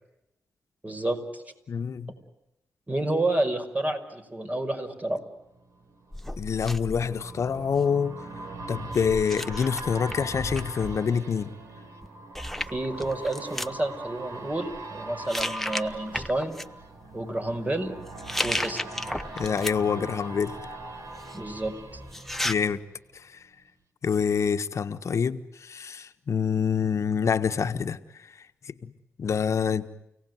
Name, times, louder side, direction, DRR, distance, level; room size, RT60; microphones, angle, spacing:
voice 1, 0.8-1.4 2.9-5.2 12.7-16.6 17.1-18.0 18.4-18.8 21.3-21.7, right 2 dB, 30° right, 5.5 m, -29 dB
voice 2, 1.7-2.1 6.4-8.2 8.7-11.5 19.3-20.6 22.4-22.8 23.1-23.4 24.0-28.0 28.6-28.9 29.2-29.9, left 6 dB, 65° left, 1.4 m, -26 dB
sound 1, 5.4-23.2 23.6-23.7, right 2 dB, 75° right, 3.6 m, -41 dB
sound 2, 6.1-7.9 8.9-11.0 12.0-12.1 12.3-13.7 14.5-14.8 15.3-16.6 18.1-20.0 20.4-22.5, left 1 dB, 5° left, 1.2 m, -35 dB
30.0 x 18.0 x 9.5 m
supercardioid pair, 45°, 5 cm